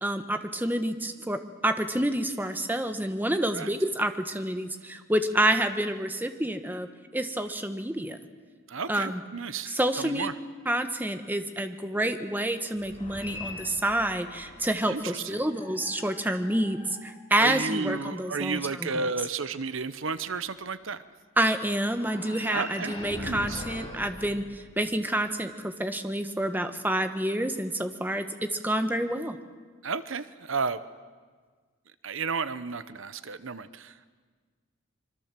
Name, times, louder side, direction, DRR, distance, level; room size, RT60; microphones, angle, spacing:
voice 1, 0.0-6.9 7.1-8.2 8.9-9.2 9.7-10.3 10.7-19.0 21.4-28.3 28.5-29.4, right 1 dB, 10° right, 7 dB, 1.2 m, -28 dB
voice 2, 8.7-10.3 14.9-15.5 17.4-21.0 22.5-23.6 29.8-30.8 32.0-34.1, right 4 dB, 70° right, 14 dB, 0.9 m, -33 dB
sound 1, 12.7-14.8 15.4-17.8 21.9-25.1, left 1 dB, 25° left, 7.0 m, -42 dB
25.5 x 24.0 x 7.6 m, 1.5 s
head